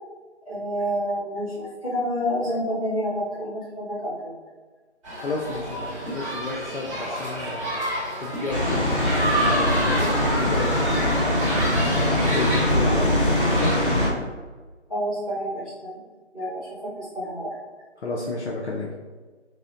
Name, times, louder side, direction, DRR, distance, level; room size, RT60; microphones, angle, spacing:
voice 1, 0.4-4.3 14.9-16.0 16.3-17.6, equal, 30° left, -11 dB, 1.3 m, -29 dB
sound 1, 5.0-13.7, equal, 25° right, 1.4 m, -29 dB
voice 2, 5.2-7.7 8.2-8.8 9.2-11.4 11.9-13.7 18.0-18.9, left 2 dB, 70° left, -2 dB, 0.6 m, -31 dB
sound 2, 8.5-14.1, left 1 dB, 45° left, 0.8 m, -22 dB
4.1 x 2.5 x 2.4 m, 1.4 s
figure-of-eight pair, 170°, 35 cm